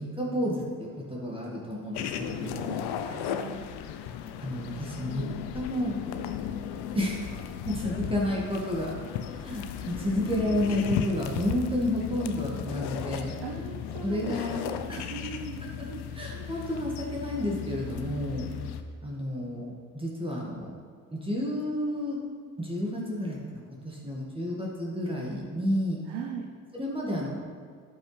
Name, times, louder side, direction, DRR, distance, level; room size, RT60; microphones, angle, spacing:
voice 1, 0.0-2.8 4.4-5.2 5.5-5.9 6.9-7.2 7.7-8.9 9.4-13.4 14.0-14.6 14.9-15.0 15.8-15.9 16.2-18.5 19.0-20.7 21.1-22.2 22.6-26.0 26.7-27.3, left 1 dB, 10° right, -4 dB, 1.9 m, -31 dB
sound 1, 1.9-18.8, left 9 dB, 65° left, 0.7 m, -36 dB
voice 2, 3.0-3.6 13.4-16.0 16.3-16.5 26.1-26.4, right 6 dB, 70° right, 0 dB, 1.0 m, -39 dB
11.5 x 5.5 x 3.3 m, 2.1 s
hypercardioid pair, 55°, 43 cm